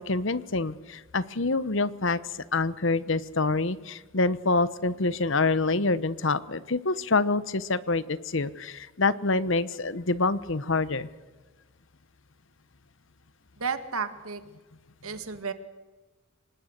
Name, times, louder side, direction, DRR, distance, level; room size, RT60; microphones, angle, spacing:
voice 1, 0.0-2.2 2.5-11.1, left 3 dB, 60° left, 16 dB, 1.0 m, -26 dB
voice 2, 13.6-14.4 15.0-15.5, right 5 dB, 90° right, 10 dB, 2.0 m, -32 dB
26.0 x 19.0 x 6.7 m, 1.2 s
head